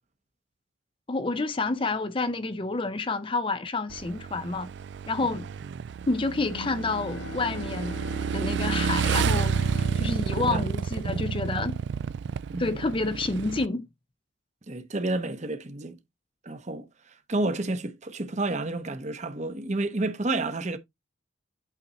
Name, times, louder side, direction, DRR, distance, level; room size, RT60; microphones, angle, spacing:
voice 1, 1.1-4.7 5.1-5.5 6.1-8.0 8.3-9.5 9.9-11.8 12.6-13.9, left 3 dB, 25° left, 0.5 m, -29 dB
Motorcycle / Engine, 3.9-13.7, right 6 dB, 60° right, 0.3 m, -30 dB
Bowed string instrument, 6.5-11.7, left 5 dB, 65° left, 0.8 m, -42 dB
voice 2, 10.3-10.7 11.0-11.3 12.5-12.8 14.7-16.0 16.4-16.9 17.3-20.8, right 2 dB, 35° right, 0.8 m, -30 dB
8.4 x 3.7 x 4.1 m
head